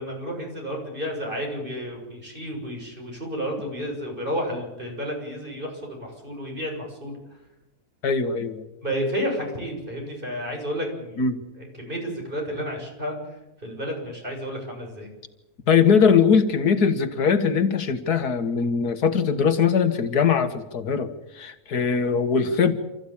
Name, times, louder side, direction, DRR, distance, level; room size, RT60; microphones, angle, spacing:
voice 1, 0.0-7.2 8.8-11.2 11.6-13.2 13.6-15.1, equal, 35° right, 0 dB, 7.1 m, -31 dB
voice 2, 8.0-8.6 11.2-11.4 15.7-22.7, left 6 dB, 85° left, 9 dB, 2.0 m, -21 dB
29.0 x 14.5 x 8.7 m, 0.99 s
omnidirectional pair, 1.6 m